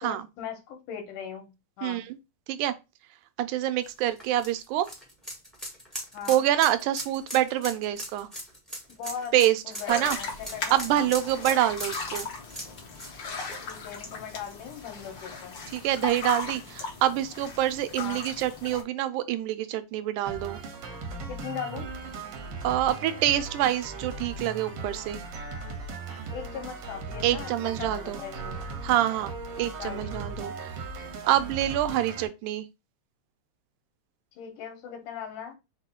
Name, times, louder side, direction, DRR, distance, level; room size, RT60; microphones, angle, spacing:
voice 1, 0.0-2.1 6.1-6.5 8.9-11.1 13.6-15.6 18.0-18.2 21.3-21.9 26.3-27.5 27.8-28.6 29.8-30.1 34.4-35.6, left 7 dB, 85° left, 2.6 m, -39 dB
voice 2, 1.8-2.2 2.5-2.7 3.4-4.9 6.3-8.3 9.3-9.6 9.9-10.2 10.7-12.3 15.7-20.6 22.6-25.2 27.2-28.2 28.8-29.3 29.6-30.7 31.3-32.7, right 13 dB, 85° right, 2.0 m, -26 dB
sound 1, 3.8-14.6 15.0-15.1 16.5-16.6, equal, ahead, 0.4 m, -39 dB
sound 2, 9.9-18.8, left 4 dB, 60° left, 1.3 m, -37 dB
sound 3, 20.3-32.3, right 3 dB, 65° right, 1.4 m, -38 dB
5.5 x 2.2 x 4.3 m
omnidirectional pair, 3.5 m